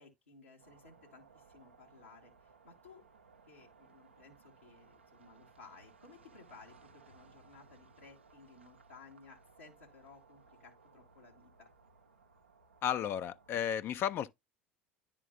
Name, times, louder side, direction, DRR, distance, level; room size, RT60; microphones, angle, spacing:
voice 1, 0.0-3.0 3.5-11.7, left 4 dB, 85° left, 1.2 m, -58 dB
sound 1, 0.6-13.6, right 4 dB, 80° right, 0.6 m, -62 dB
voice 2, 12.8-14.3, left 9 dB, 40° left, 0.4 m, -33 dB
10.5 x 3.7 x 2.4 m
figure-of-eight pair, 70°, 6 cm